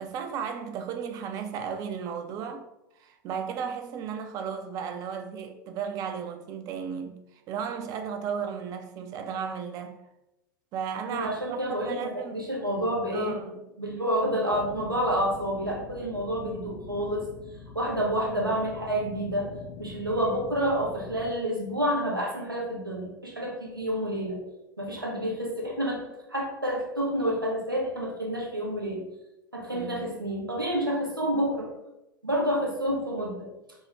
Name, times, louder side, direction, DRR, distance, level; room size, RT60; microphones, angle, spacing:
voice 1, 0.0-2.7 3.0-10.0 10.7-12.5 13.1-13.6 29.7-30.2, right 7 dB, 35° right, 0.4 m, -35 dB
voice 2, 11.1-13.4 13.8-17.2 17.7-19.5 19.8-24.4 24.8-26.0 26.3-29.0 29.5-31.7 32.2-33.5, equal, 85° right, 1.0 m, -29 dB
sound 1, 14.5-21.3, left 4 dB, 40° left, 0.5 m, -44 dB
4.5 x 2.1 x 3.1 m
figure-of-eight pair, 85°, 11 cm